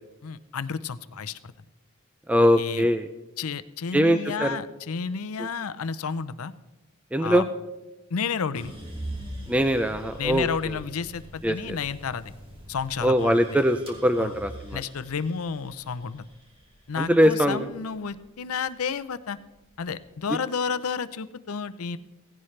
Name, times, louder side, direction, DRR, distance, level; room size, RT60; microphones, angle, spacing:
voice 1, 0.2-1.5 2.6-2.9 3.4-6.5 7.2-7.4 8.1-8.7 10.2-12.3 12.7-13.6 14.2-14.3 14.7-16.3 16.9-19.4 19.8-22.0, left 6 dB, 85° left, 15 dB, 0.6 m, -31 dB
voice 2, 2.3-3.1 3.9-4.6 5.4-5.5 7.1-7.5 9.5-10.8 11.4-11.8 13.0-14.8 17.0-17.7 20.3-20.4, equal, 5° right, 8 dB, 0.4 m, -22 dB
sound 1, 8.5-18.7 19.2-20.0, right 1 dB, 25° right, 2.1 m, -42 dB
16.5 x 16.0 x 3.3 m, 1.0 s
head